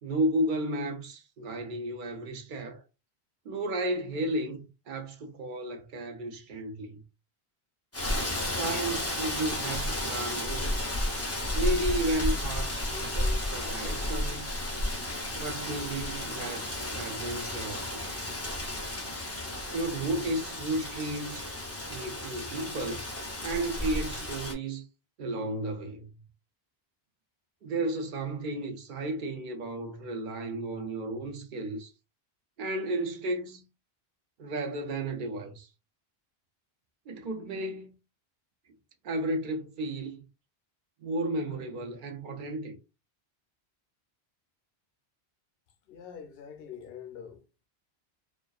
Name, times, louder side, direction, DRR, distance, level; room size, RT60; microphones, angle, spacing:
voice 1, 0.0-2.8 3.4-7.0 8.5-10.9 11.5-14.5 15.4-18.0 19.7-21.5 21.9-23.1 23.4-24.9 25.2-26.1 27.6-31.9 32.6-33.6 34.4-35.7 37.1-37.9 39.0-40.2 41.0-42.7, right 1 dB, 60° right, 0.6 m, -33 dB
Rain, 7.9-24.5, left 1 dB, 20° left, 0.4 m, -33 dB
voice 2, 45.9-47.4, left 8 dB, 70° left, 0.7 m, -44 dB
2.3 x 2.3 x 2.3 m
omnidirectional pair, 1.1 m